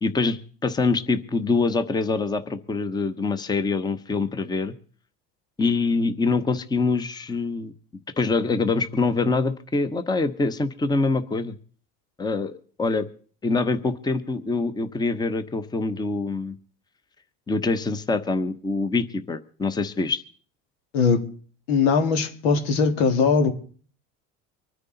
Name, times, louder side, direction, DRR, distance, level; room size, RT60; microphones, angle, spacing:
voice 1, 0.0-4.7 5.6-7.7 8.2-11.6 12.2-13.1 13.4-16.5 17.5-20.2, left 3 dB, 15° left, 12 dB, 0.9 m, -25 dB
voice 2, 21.7-23.5, left 5 dB, 85° left, 7 dB, 2.2 m, -20 dB
25.0 x 9.7 x 4.0 m, 0.44 s
supercardioid pair, 120°, 30 cm